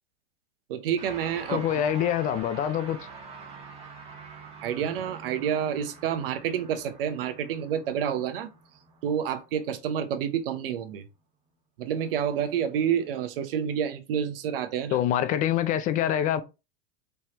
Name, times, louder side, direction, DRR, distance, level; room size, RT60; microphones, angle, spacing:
voice 1, 0.7-1.7 4.6-8.5 9.0-11.0 11.8-15.0, right 8 dB, 70° right, 0.9 m, -29 dB
sound 1, 1.0-10.4, right 4 dB, 20° right, 1.4 m, -46 dB
voice 2, 1.5-3.0 14.9-16.4, left 10 dB, 30° left, 0.4 m, -25 dB
4.4 x 3.4 x 2.9 m
hypercardioid pair, 125°, 29 cm